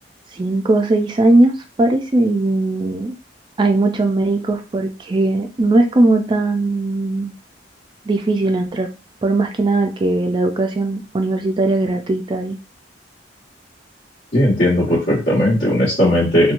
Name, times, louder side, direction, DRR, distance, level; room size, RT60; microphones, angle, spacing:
voice 1, 0.3-1.5 1.8-3.1 3.6-7.3 8.1-8.9 9.2-12.6, right 2 dB, 25° right, 4 dB, 0.3 m, -18 dB
voice 2, 14.3-16.5, equal, 55° left, -10 dB, 1.3 m, -16 dB
2.9 x 2.2 x 2.5 m, 0.31 s
head